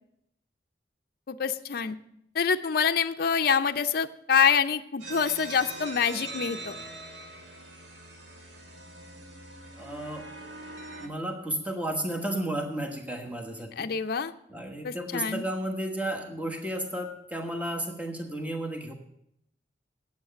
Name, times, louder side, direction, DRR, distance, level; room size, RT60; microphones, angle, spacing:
voice 1, 1.3-2.0 2.3-6.8 13.8-14.3 14.8-15.4, left 6 dB, 55° left, 8 dB, 0.5 m, -26 dB
sound 1, 5.0-11.1, right 2 dB, 90° right, 1.9 m, -42 dB
voice 2, 9.7-10.3 11.0-13.9 14.5-18.9, right 1 dB, 10° right, 1 dB, 1.2 m, -33 dB
8.9 x 8.6 x 6.8 m, 0.76 s
head